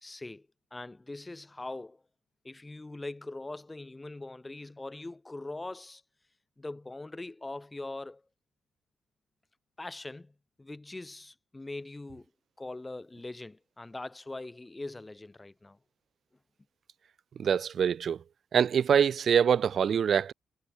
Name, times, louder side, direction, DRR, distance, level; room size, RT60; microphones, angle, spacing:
voice 1, 0.0-2.0 2.4-6.0 6.6-8.2 9.8-12.3 12.6-15.8, left 2 dB, 15° left, 1.3 m, -42 dB
voice 2, 17.4-18.2 18.5-20.3, right 7 dB, 55° right, 0.5 m, -24 dB
cardioid pair, 90°, 0 cm